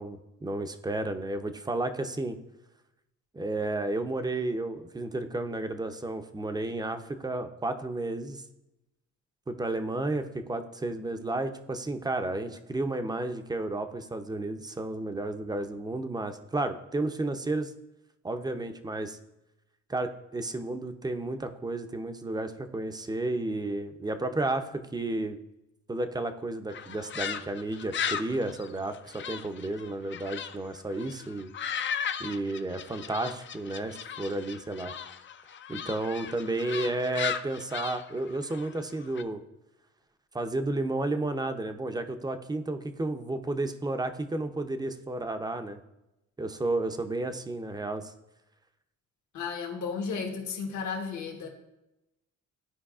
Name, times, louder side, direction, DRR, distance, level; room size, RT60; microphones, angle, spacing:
voice 1, 0.0-2.4 3.3-8.4 9.5-17.7 18.2-19.2 19.9-25.4 25.9-31.5 32.2-34.9 35.7-39.4 40.3-45.8 46.4-48.1, right 2 dB, 15° right, 8 dB, 0.6 m, -32 dB
sound 1, 26.7-30.6 30.9-39.2, left 8 dB, 40° left, 0.5 m, -36 dB
voice 2, 49.3-51.5, left 5 dB, 70° left, 2 dB, 1.4 m, -34 dB
13.0 x 4.6 x 2.4 m, 0.93 s
cardioid pair, 90°, 30 cm